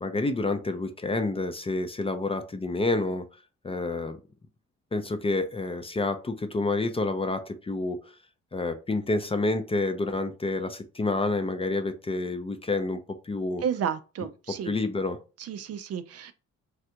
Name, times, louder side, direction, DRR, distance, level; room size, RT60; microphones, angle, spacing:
voice 1, 0.0-3.3 3.6-4.2 4.9-8.1 8.5-13.6 14.7-15.2, left 2 dB, 20° left, 0.4 m, -28 dB
voice 2, 13.6-14.7 15.4-16.3, right 8 dB, 55° right, 0.4 m, -32 dB
3.3 x 2.4 x 2.8 m
cardioid pair, 90°, 30 cm